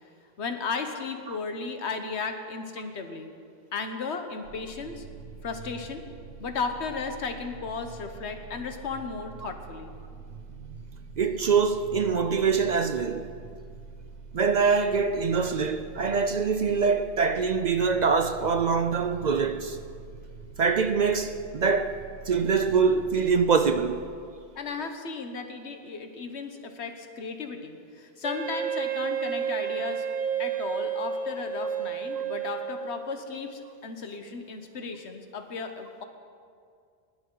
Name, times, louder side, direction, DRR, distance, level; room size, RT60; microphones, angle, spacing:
voice 1, 0.4-3.3 3.7-5.0 5.4-6.0 6.4-9.9 24.5-30.1 30.4-36.0, left 4 dB, 90° left, 1.3 m, -35 dB
sound 1, 4.4-24.0, right 4 dB, 85° right, 1.3 m, -45 dB
voice 2, 11.2-13.3 14.3-19.8 20.6-24.1 32.2-32.3, right 5 dB, 55° right, 0.5 m, -24 dB
Wind instrument woodwind instrument, 28.2-33.3, right 7 dB, 10° right, 1.0 m, -31 dB
20.0 x 11.0 x 3.9 m
omnidirectional pair, 1.1 m